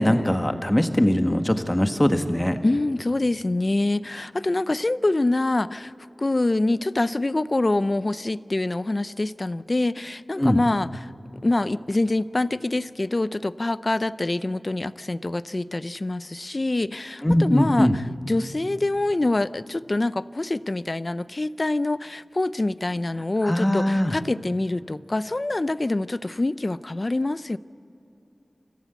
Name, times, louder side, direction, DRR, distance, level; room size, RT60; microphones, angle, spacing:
voice 1, 0.0-2.6 10.4-10.6 17.2-18.0 23.4-24.2, left 1 dB, 15° left, 7 dB, 1.5 m, -21 dB
voice 2, 2.6-5.9 6.2-11.1 11.4-27.6, left 2 dB, 45° left, 16 dB, 0.5 m, -25 dB
27.5 x 14.5 x 8.2 m, 3.0 s
wide cardioid pair, 45°, 0 cm